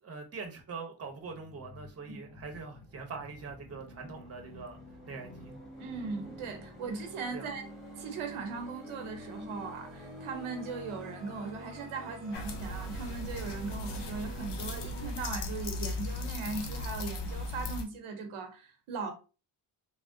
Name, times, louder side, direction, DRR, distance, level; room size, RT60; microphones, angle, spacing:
voice 1, 0.0-4.8 5.1-5.5 7.3-7.5, right 4 dB, 30° right, 0.8 m, -43 dB
sound 1, 1.1-15.1, left 1 dB, ahead, 1.3 m, -48 dB
voice 2, 5.8-7.6 8.0-19.1, right 4 dB, 90° right, 0.8 m, -39 dB
sound 2, 12.3-17.8, left 1 dB, 60° left, 0.7 m, -37 dB
3.4 x 2.1 x 2.5 m
cardioid pair, 65°, 48 cm